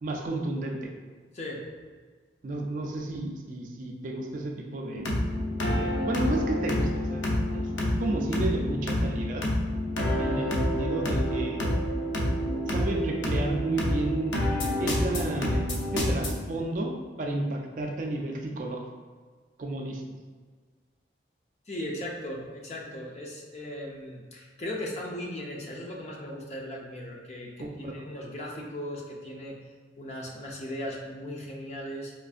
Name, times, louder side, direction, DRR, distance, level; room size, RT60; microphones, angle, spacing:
voice 1, 0.0-0.9 2.4-5.0 5.7-7.2 7.5-9.4 10.2-11.9 12.6-14.3 14.8-18.8 19.6-20.0 27.6-28.0, right 2 dB, 45° right, 1 dB, 0.3 m, -32 dB
voice 2, 1.3-1.7 21.7-29.6 30.0-32.1, left 1 dB, 35° left, -2 dB, 0.5 m, -37 dB
sound 1, 4.9-16.3, left 1 dB, 90° left, 0.7 m, -28 dB
4.4 x 2.5 x 2.4 m, 1.5 s
head